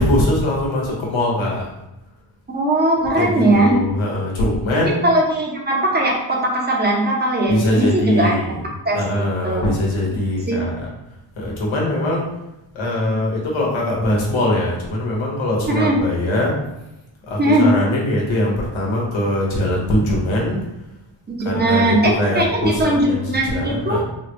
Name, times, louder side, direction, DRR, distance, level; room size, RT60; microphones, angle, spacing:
voice 1, 0.0-1.7 3.1-5.0 7.5-8.6 8.9-10.9 11.4-12.2 12.7-16.6 17.3-20.6 21.4-24.0, left 1 dB, 80° left, -3 dB, 1.1 m, -21 dB
voice 2, 2.5-3.8 4.7-8.3 8.8-9.7 10.5-10.6 15.6-16.0 17.4-17.7 21.4-24.0, right 1 dB, 20° right, -2 dB, 0.7 m, -19 dB
3.4 x 2.2 x 2.9 m, 0.91 s
wide cardioid pair, 105°, 47 cm